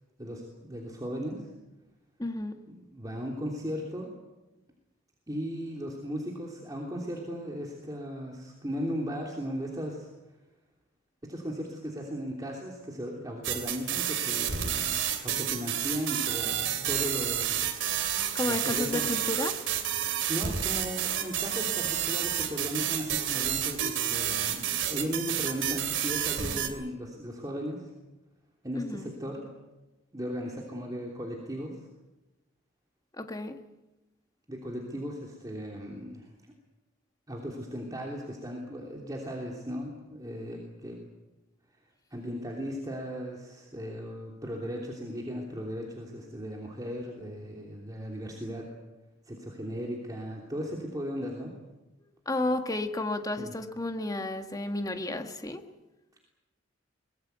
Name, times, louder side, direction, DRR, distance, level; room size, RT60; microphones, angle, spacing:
voice 1, 0.2-1.5 2.7-4.1 5.3-10.1 11.3-17.6 18.5-19.1 20.3-27.9 28.6-29.5 30.1-31.7 34.5-36.3 37.3-41.0 42.1-48.7 49.3-51.5 53.4-53.5, equal, 20° right, -1 dB, 3.1 m, -36 dB
voice 2, 2.2-2.6 18.3-19.6 28.7-29.1 33.1-33.6 52.2-55.6, left 2 dB, 20° left, 6 dB, 1.7 m, -32 dB
sound 1, 13.4-26.7, right 10 dB, 70° right, 3.0 m, -30 dB
23.5 x 20.5 x 8.2 m, 1.0 s
head